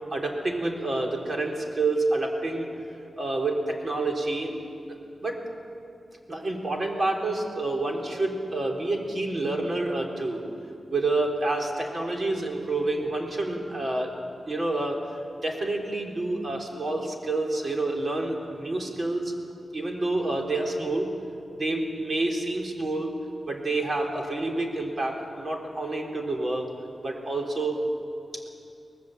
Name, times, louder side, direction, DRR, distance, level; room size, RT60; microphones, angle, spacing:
voice 1, 0.1-2.7 3.2-4.5 4.9-5.0 5.2-5.4 6.3-10.4 10.9-14.1 14.5-15.0 15.4-19.3 19.7-21.1 21.6-23.1 23.5-26.7 27.0-27.8, right 2 dB, 45° right, 1 dB, 3.9 m, -28 dB
24.0 x 19.0 x 8.2 m, 2.5 s
wide cardioid pair, 95°, 0 cm